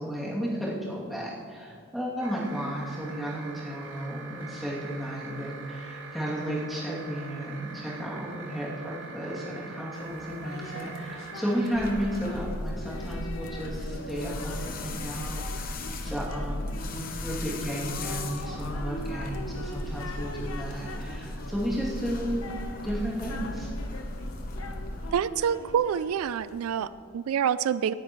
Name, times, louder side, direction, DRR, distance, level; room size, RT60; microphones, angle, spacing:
voice 1, 0.0-22.5 22.8-23.7, equal, ahead, -8 dB, 2.6 m, -33 dB
sound 1, 2.2-12.4, right 4 dB, 60° right, 1.9 m, -44 dB
sound 2, 9.9-26.9, left 1 dB, 75° left, 1.0 m, -43 dB
sound 3, 11.7-25.1, left 1 dB, 40° left, 0.9 m, -36 dB
voice 2, 25.1-27.9, right 8 dB, 90° right, 16 dB, 0.3 m, -27 dB
18.5 x 9.9 x 3.1 m, 2.3 s
head